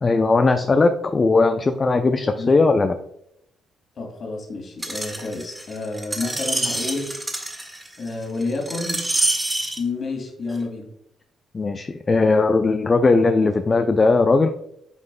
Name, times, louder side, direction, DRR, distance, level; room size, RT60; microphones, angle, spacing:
voice 1, 0.0-2.9 11.5-14.5, left 3 dB, 35° left, 7 dB, 0.5 m, -18 dB
voice 2, 4.0-7.1 8.0-9.0 9.8-10.9, left 3 dB, 50° left, 2 dB, 2.2 m, -29 dB
Screech, 4.8-9.8 10.5-10.6, right 1 dB, 20° right, 1.8 m, -26 dB
9.6 x 5.3 x 2.3 m, 0.75 s
figure-of-eight pair, 45°, 0 cm